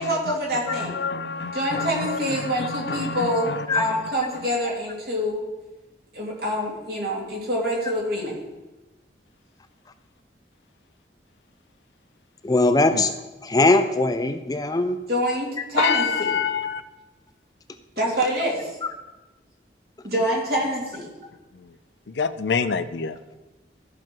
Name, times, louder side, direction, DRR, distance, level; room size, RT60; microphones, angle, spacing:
voice 1, 0.0-1.0 1.5-5.5 6.1-8.4 15.1-16.3 18.0-18.8 20.0-21.1, equal, 60° right, -3 dB, 2.8 m, -26 dB
voice 2, 0.7-4.0 12.9-13.0 15.8-16.8 21.6-21.7 22.1-23.2, left 5 dB, 80° left, 12 dB, 0.6 m, -27 dB
voice 3, 12.4-13.1 13.4-15.0, left 2 dB, 20° left, 8 dB, 0.5 m, -20 dB
14.0 x 6.1 x 4.7 m, 1.1 s
head